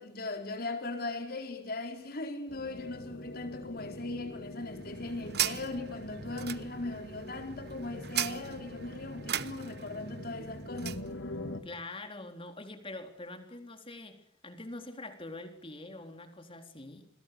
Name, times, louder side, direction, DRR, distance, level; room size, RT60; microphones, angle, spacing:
voice 1, 0.0-11.0, left 2 dB, 55° left, 4.6 m, -39 dB
sound 1, 2.5-11.6, left 1 dB, 90° left, 2.6 m, -44 dB
sound 2, 4.5-11.1, right 11 dB, 60° right, 0.9 m, -38 dB
voice 2, 11.6-14.2 14.4-17.1, left 2 dB, 30° left, 3.9 m, -44 dB
29.5 x 21.5 x 6.9 m
head